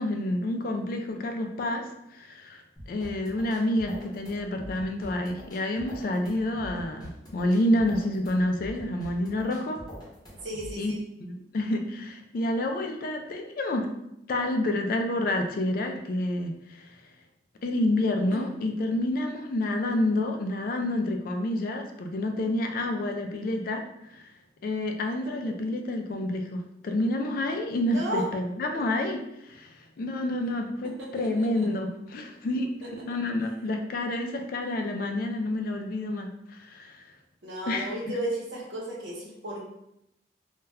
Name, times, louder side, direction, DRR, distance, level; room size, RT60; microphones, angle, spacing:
voice 1, 0.0-9.8 10.8-10.9 11.2-13.9 14.3-16.9 17.6-24.2 24.6-32.7 33.1-37.0 37.7-37.9, left 1 dB, 50° left, 4 dB, 0.3 m, -29 dB
sound 1, 2.8-10.8, equal, 20° left, 0.8 m, -44 dB
voice 2, 10.4-11.0 18.3-18.4 25.3-25.8 27.8-28.2 30.8-31.7 32.8-32.9 37.4-39.6, right 1 dB, 80° right, -4 dB, 0.9 m, -35 dB
2.2 x 2.2 x 3.4 m, 0.83 s
head